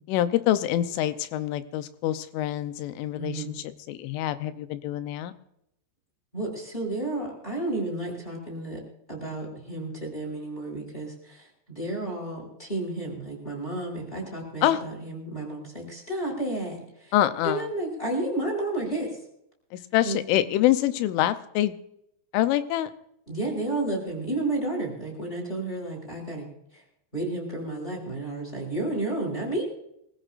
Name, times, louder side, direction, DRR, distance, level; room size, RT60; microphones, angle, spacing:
voice 1, 0.1-3.5 3.9-5.3 14.6-14.8 17.1-17.7 19.9-21.7 22.3-22.9, left 13 dB, 85° left, 11 dB, 3.3 m, -25 dB
voice 2, 3.1-3.6 6.3-8.8 9.1-17.1 17.4-19.2 20.0-20.2 23.3-26.5 26.7-26.8 27.1-29.6, right 2 dB, 10° left, -2 dB, 6.7 m, -31 dB
25.0 x 15.5 x 2.6 m, 0.78 s
omnidirectional pair, 5.5 m